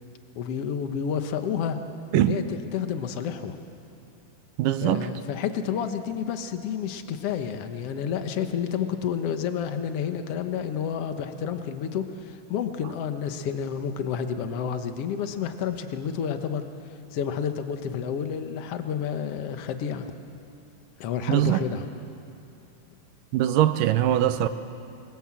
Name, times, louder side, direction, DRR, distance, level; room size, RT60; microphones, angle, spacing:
voice 1, 0.3-1.8 2.1-3.6 4.8-16.6 17.1-20.1 21.0-21.9, left 7 dB, 60° left, 7 dB, 1.6 m, -30 dB
voice 2, 4.6-5.1 21.3-21.6 23.3-24.5, right 12 dB, 75° right, 11 dB, 2.2 m, -22 dB
26.5 x 23.0 x 7.6 m, 2.8 s
omnidirectional pair, 4.3 m